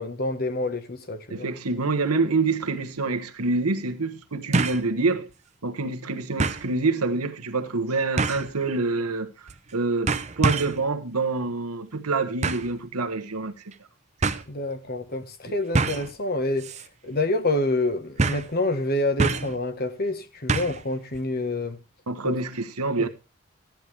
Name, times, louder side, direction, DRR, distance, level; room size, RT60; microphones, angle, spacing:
voice 1, 0.0-1.5 14.5-21.8 22.2-22.3 23.0-23.1, left 2 dB, 45° left, 1.3 m, -27 dB
voice 2, 1.3-5.3 5.6-9.3 9.7-13.5 22.1-23.1, right 3 dB, 85° right, 1.3 m, -26 dB
sound 1, 2.6-2.7 4.5-4.9 5.3-5.4 6.4-6.7 8.2-8.5 9.5-9.7 10.1-10.8 12.4-12.7 13.7-13.8 14.2-14.4 15.7-16.1 16.6-16.9 17.1-17.2 18.2-18.5 19.2-19.6 20.5-20.8 21.1-21.2, right 3 dB, 30° right, 0.7 m, -25 dB
14.5 x 10.5 x 3.4 m
head